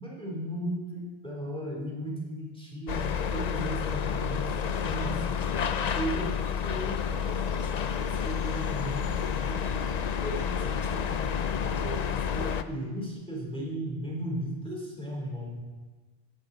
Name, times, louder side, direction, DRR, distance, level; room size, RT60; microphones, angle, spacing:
voice 1, 0.0-5.5 5.9-6.4 6.6-11.4 11.7-15.6, right 1 dB, 5° left, -3 dB, 3.2 m, -36 dB
sound 1, 2.9-12.6, left 7 dB, 50° left, 0.5 m, -30 dB
15.5 x 15.0 x 3.9 m, 1.3 s
omnidirectional pair, 1.2 m